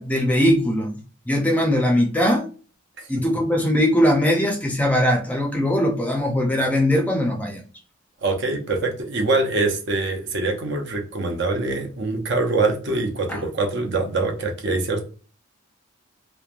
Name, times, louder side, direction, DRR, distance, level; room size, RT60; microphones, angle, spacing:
voice 1, 0.0-2.5 3.1-7.6 13.3-13.4, equal, 5° left, 1 dB, 0.4 m, -20 dB
voice 2, 8.2-15.0, right 3 dB, 55° right, 3 dB, 0.6 m, -24 dB
3.1 x 2.1 x 2.4 m, 0.38 s
head